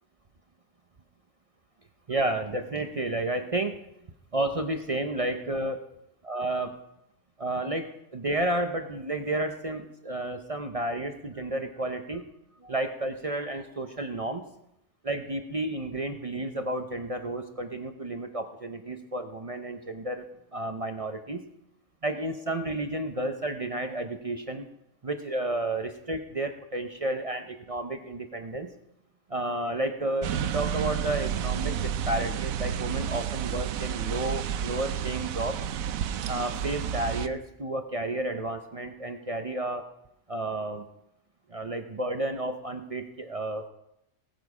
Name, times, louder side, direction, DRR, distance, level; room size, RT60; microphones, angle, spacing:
voice 1, 2.1-3.8 4.3-5.8 6.3-6.8 7.4-12.2 12.6-14.4 15.0-20.2 20.5-21.4 22.0-24.7 25.0-28.7 29.3-35.6 36.3-39.9 40.3-40.9 41.5-43.7, right 1 dB, 35° right, 6 dB, 0.6 m, -31 dB
sound 1, 30.2-37.3, right 9 dB, 90° right, 1.1 m, -31 dB
19.5 x 7.1 x 4.9 m, 0.81 s
omnidirectional pair, 1.4 m